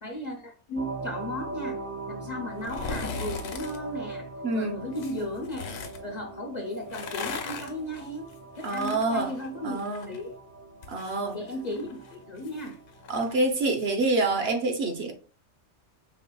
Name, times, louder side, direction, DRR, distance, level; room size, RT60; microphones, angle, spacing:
voice 1, 0.0-1.8 2.1-4.3 4.5-5.7 6.0-8.3 8.6-9.8 10.1-10.3 11.3-12.8, left 1 dB, 45° left, 0.6 m, -35 dB
sound 1, 0.8-13.3, right 2 dB, 20° right, 0.4 m, -41 dB
sound 2, 2.6-3.8 4.9-6.0 6.7-10.2 10.5-13.9 14.3-14.4, left 5 dB, 90° left, 1.0 m, -39 dB
voice 2, 4.4-4.8 8.6-9.3 9.6-10.1 10.9-11.4 13.1-15.1, right 2 dB, 60° right, 0.9 m, -27 dB
4.9 x 3.2 x 2.2 m
omnidirectional pair, 1.2 m